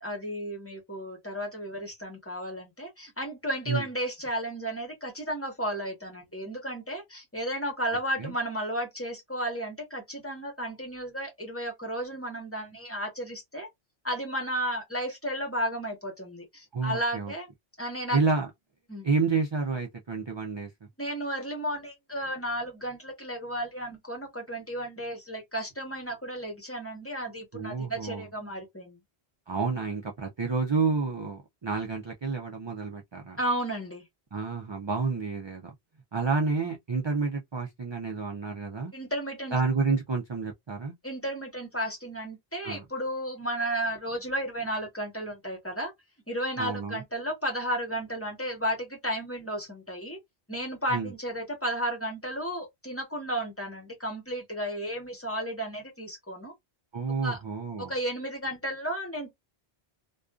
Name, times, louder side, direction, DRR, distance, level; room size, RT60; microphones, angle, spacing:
voice 1, 0.0-13.7 14.0-17.5 17.8-18.2 18.9-19.1 21.0-29.0 33.4-34.0 38.9-39.6 41.0-45.9 46.3-50.2 50.5-56.5 57.2-57.4 57.9-59.3, equal, 15° left, 0.9 m, -33 dB
voice 2, 16.7-17.3 18.1-18.5 19.0-20.9 27.5-28.3 29.5-33.4 34.3-35.7 36.1-38.9 39.5-40.9 42.6-42.8 46.6-47.0 50.9-51.1 56.9-57.9, right 4 dB, 40° right, 0.4 m, -29 dB
2.5 x 2.3 x 2.2 m
omnidirectional pair, 1.1 m